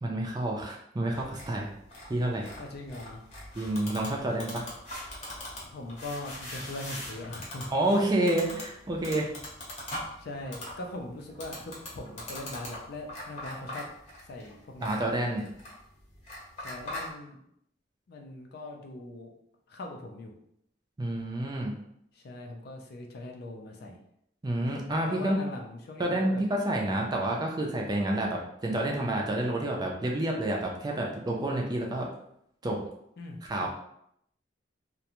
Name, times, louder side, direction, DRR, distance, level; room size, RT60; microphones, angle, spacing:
voice 1, 0.0-1.7 2.1-2.5 3.5-4.7 7.7-9.3 14.8-15.4 21.0-21.7 24.4-25.4 26.0-32.1 32.6-32.8 33.5-33.7, right 1 dB, 20° right, -1 dB, 0.4 m, -29 dB
sound 1, 1.1-17.1, left 1 dB, 35° left, 0.8 m, -42 dB
voice 2, 2.6-3.2 5.6-7.7 8.4-8.6 10.2-13.8 14.3-15.1 16.6-17.4 18.1-19.3 19.7-20.3 22.2-24.0 25.1-26.4 33.2-33.7, left 2 dB, 55° left, 2 dB, 0.4 m, -41 dB
2.4 x 2.2 x 2.9 m, 0.74 s
head